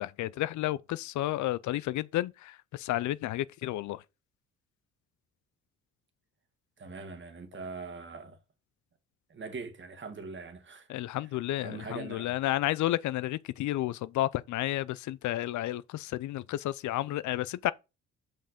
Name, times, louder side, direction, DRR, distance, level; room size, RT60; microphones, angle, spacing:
voice 1, 0.0-4.0 10.9-17.7, left 15 dB, 75° left, 0.5 m, -31 dB
voice 2, 6.8-8.4 9.3-10.9 11.6-12.3, right 4 dB, 40° right, 1.6 m, -42 dB
5.6 x 5.4 x 5.1 m
cardioid pair, 90°, 30 cm